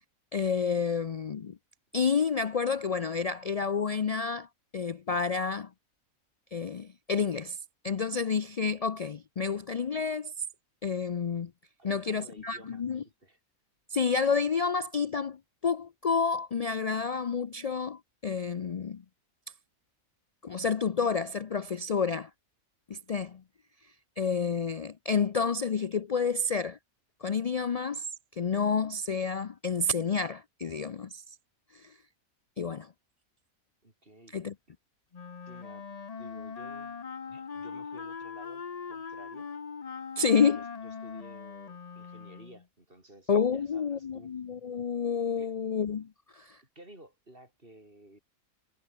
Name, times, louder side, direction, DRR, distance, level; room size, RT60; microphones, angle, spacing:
voice 1, 0.3-1.6 1.9-4.5 4.7-5.7 6.5-7.6 7.8-10.3 10.8-11.5 11.8-13.0 13.9-19.0 20.4-22.3 22.9-23.4 24.2-26.8 27.2-28.1 28.3-31.2 31.7-31.9 32.6-32.9 34.3-34.5 40.2-40.6 43.3-46.6, left 5 dB, 65° left, 0.3 m, -29 dB
voice 2, 11.8-13.4 33.8-34.4 35.5-39.5 40.8-44.3 45.4-45.5 46.8-48.2, right 1 dB, 40° right, 7.1 m, -53 dB
Wind instrument woodwind instrument, 35.1-42.6, left 5 dB, 35° left, 0.8 m, -41 dB
omnidirectional pair, 1.5 m